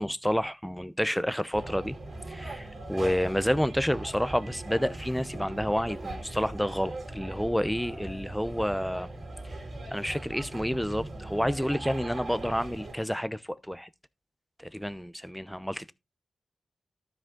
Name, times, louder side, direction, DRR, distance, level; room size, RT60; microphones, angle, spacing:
voice 1, 0.0-2.0 2.3-9.1 9.4-9.6 9.9-13.9 14.6-15.9, equal, ahead, 0.8 m, -29 dB
sound 1, 1.5-12.9, right 2 dB, 60° right, 2.8 m, -40 dB
12.5 x 5.0 x 3.8 m
cardioid pair, 55°, 0 cm